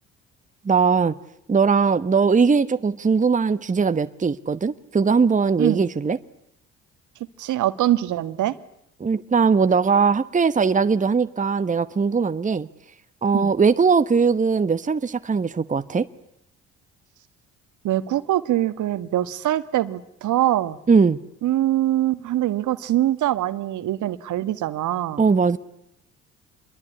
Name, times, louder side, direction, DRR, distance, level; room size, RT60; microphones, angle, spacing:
voice 1, 0.6-1.1 1.5-6.2 9.0-12.7 13.2-16.1 20.9-21.2 25.2-25.6, right 5 dB, 20° right, 1.2 m, -20 dB
voice 2, 7.4-8.5 13.3-13.5 17.8-20.8 21.4-25.2, right 13 dB, 60° right, 1.6 m, -23 dB
27.0 x 22.0 x 9.7 m
hypercardioid pair, 50°, 34 cm